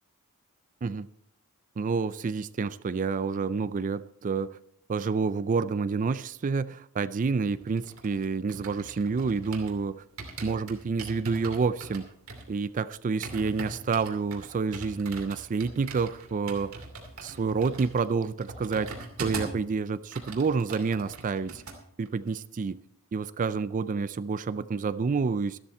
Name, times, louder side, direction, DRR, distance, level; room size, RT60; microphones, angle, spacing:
voice 1, 1.8-4.6 4.9-10.0 10.4-12.1 12.5-16.8 17.2-21.6 22.0-22.8 23.1-25.6, right 4 dB, 35° right, 0.4 m, -29 dB
sound 1, 7.5-9.8 10.2-19.7 19.9-21.8 22.1-22.3, right 3 dB, 70° right, 2.8 m, -41 dB
13.5 x 12.5 x 4.3 m
head